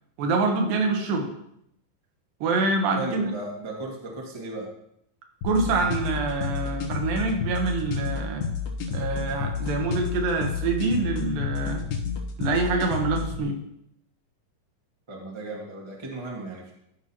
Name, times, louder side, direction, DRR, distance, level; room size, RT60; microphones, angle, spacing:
voice 1, 0.2-1.3 2.4-3.3 5.4-8.5 8.9-11.8 12.4-13.6, right 3 dB, 80° right, 3 dB, 2.8 m, -26 dB
voice 2, 2.9-4.7 15.1-16.7, right 2 dB, 35° right, -3 dB, 0.4 m, -35 dB
sound 1, 5.4-13.4, left 5 dB, 85° left, 3.3 m, -30 dB
14.5 x 5.6 x 3.0 m, 0.75 s
omnidirectional pair, 4.1 m